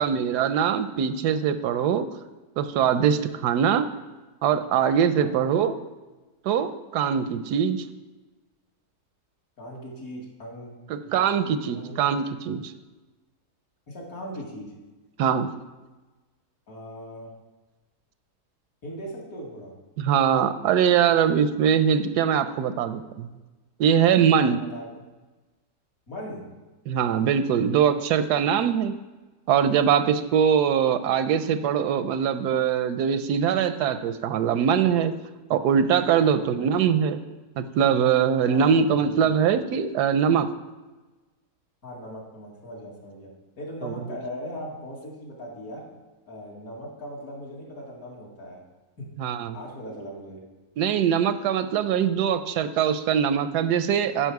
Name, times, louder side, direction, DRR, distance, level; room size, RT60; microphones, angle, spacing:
voice 1, 0.0-2.1 2.6-3.9 4.4-5.8 6.4-7.8 10.9-12.7 15.2-15.5 20.0-23.3 23.8-24.6 26.9-28.9 29.5-35.1 35.5-37.2 37.6-40.5 43.8-43.9 49.2-49.6 50.8-54.3, right 8 dB, 85° right, 11 dB, 1.1 m, -22 dB
voice 2, 9.6-12.1 13.9-14.7 16.7-17.3 18.8-19.7 24.5-25.0 26.1-26.5 36.2-36.7 38.5-39.5 41.8-43.3 43.6-45.8 46.3-48.6 49.0-49.1 49.5-50.4, equal, 60° left, -3 dB, 2.4 m, -39 dB
10.0 x 5.7 x 4.7 m, 1.2 s
omnidirectional pair, 1.7 m